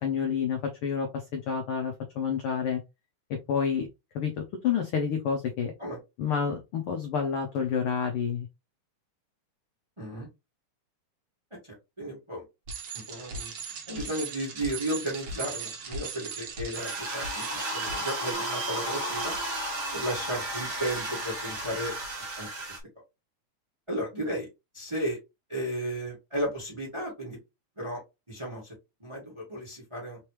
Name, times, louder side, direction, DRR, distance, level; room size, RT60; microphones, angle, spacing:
voice 1, 0.0-2.8 3.3-3.9 4.1-5.7 6.2-8.5, left 7 dB, 80° left, 4 dB, 1.2 m, -29 dB
voice 2, 10.0-10.3 11.7-12.4 13.1-13.5 13.9-19.3 19.9-21.9 22.4-22.5 23.9-24.5 24.7-25.2 25.5-27.4 27.8-28.0 28.3-28.7 29.0-30.2, right 1 dB, 15° right, -3 dB, 1.1 m, -34 dB
Bicycle, 12.7-18.3, right 4 dB, 70° right, 1.0 m, -39 dB
sound 1, 16.7-22.8, right 1 dB, 45° right, 1.5 m, -33 dB
4.5 x 3.0 x 3.2 m, 0.24 s
omnidirectional pair, 3.4 m